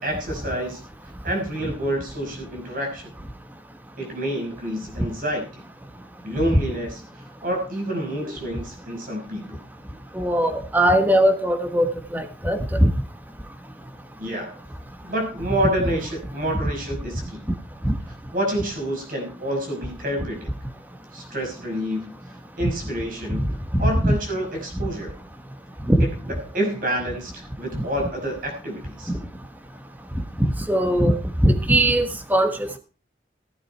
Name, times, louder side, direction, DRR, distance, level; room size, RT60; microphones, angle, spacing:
voice 1, 0.0-0.8 1.2-3.1 4.0-5.6 6.2-7.0 7.4-9.6 14.2-14.6 15.0-17.4 18.3-20.5 21.1-22.1 22.6-23.5 23.8-25.1 26.3-29.1, equal, 50° right, 1 dB, 5.6 m, -28 dB
voice 2, 10.1-11.9 12.1-12.9 17.8-18.0 23.7-24.2 25.9-26.1 30.4-31.1 31.4-32.8, right 1 dB, 10° right, 8 dB, 1.3 m, -20 dB
16.0 x 8.9 x 4.5 m, 0.35 s
head